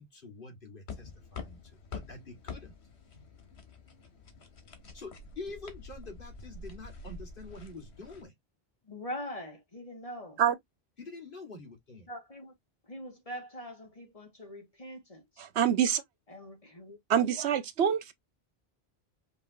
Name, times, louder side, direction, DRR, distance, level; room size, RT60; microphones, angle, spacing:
voice 1, 0.0-2.7 4.9-8.3 11.0-12.1, left 3 dB, 55° left, 1.9 m, -46 dB
sound 1, 0.9-8.2, left 4 dB, 90° left, 1.6 m, -46 dB
voice 2, 8.8-10.4 12.1-12.5 12.8-15.5 16.3-17.0, equal, 35° left, 2.2 m, -43 dB
voice 3, 15.4-16.0 17.1-18.1, right 9 dB, 90° right, 1.0 m, -26 dB
5.2 x 3.1 x 2.6 m
omnidirectional pair, 1.1 m